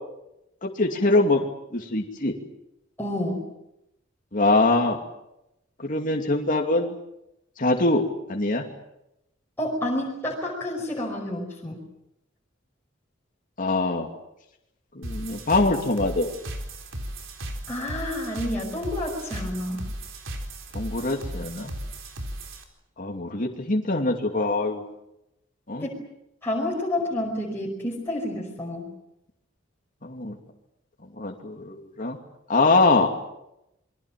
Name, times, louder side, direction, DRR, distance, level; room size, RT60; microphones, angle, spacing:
voice 1, 0.6-1.4 1.7-2.3 4.3-5.0 5.8-6.9 7.6-8.0 8.3-8.6 13.6-14.1 14.9-16.3 20.7-21.7 23.0-24.8 25.7-25.8 30.0-30.4 31.2-32.2 32.5-33.1, left 2 dB, 45° left, 1 dB, 2.7 m, -23 dB
voice 2, 3.0-3.5 9.6-11.8 17.7-19.8 25.8-25.9 26.4-28.9, left 1 dB, 10° left, -4 dB, 5.3 m, -29 dB
sound 1, 15.0-22.6, right 1 dB, 80° right, 4.0 m, -36 dB
28.5 x 23.0 x 7.6 m, 0.85 s
head